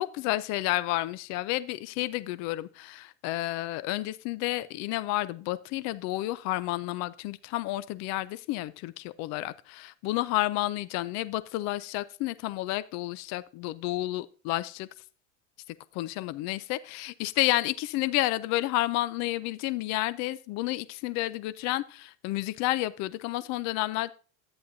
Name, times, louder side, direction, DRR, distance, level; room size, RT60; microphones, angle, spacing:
voice 1, 0.0-14.9 15.9-24.1, left 17 dB, 50° left, 16 dB, 0.5 m, -30 dB
11.0 x 9.5 x 2.6 m, 0.38 s
supercardioid pair, 135°, 35 cm